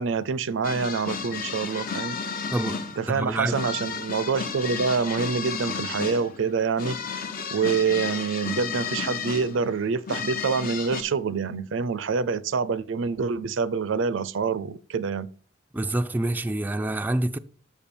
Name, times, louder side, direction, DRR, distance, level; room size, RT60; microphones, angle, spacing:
voice 1, 0.0-2.4 3.0-7.3 7.5-15.3, right 5 dB, 75° right, 0.4 m, -26 dB
sound 1, 0.6-11.0, left 6 dB, 50° left, 0.7 m, -33 dB
voice 2, 2.5-2.8 3.1-3.5 15.7-17.4, right 1 dB, 10° right, 0.3 m, -26 dB
7.0 x 5.6 x 4.3 m
head